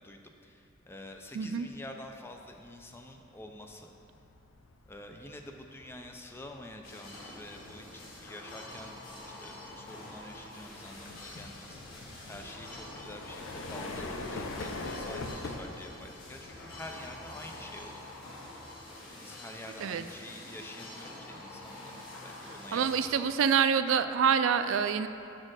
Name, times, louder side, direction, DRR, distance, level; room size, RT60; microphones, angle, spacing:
voice 1, 0.0-3.9 4.9-8.9 9.2-11.8 12.3-18.5 19.2-22.0 22.2-23.5, left 1 dB, 10° left, 3 dB, 0.4 m, -47 dB
voice 2, 1.3-1.7 19.8-20.0 22.7-25.1, right 7 dB, 70° right, 11 dB, 0.3 m, -26 dB
sound 1, 1.7-2.0 2.4-19.1, left 2 dB, 70° left, 0.5 m, -45 dB
sound 2, 6.8-23.1, left 1 dB, 90° left, 1.4 m, -47 dB
6.3 x 4.2 x 6.2 m, 2.6 s
head